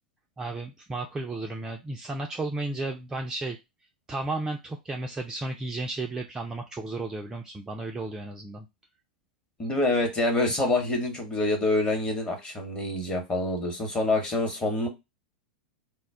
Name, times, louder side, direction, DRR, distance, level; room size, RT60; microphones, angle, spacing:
voice 1, 0.4-3.6 4.1-8.7, right 2 dB, 15° right, 2 dB, 0.3 m, -33 dB
voice 2, 9.6-14.9, left 2 dB, 20° left, 3 dB, 0.9 m, -26 dB
2.2 x 2.0 x 3.5 m, 0.23 s
figure-of-eight pair, 95°, 5 cm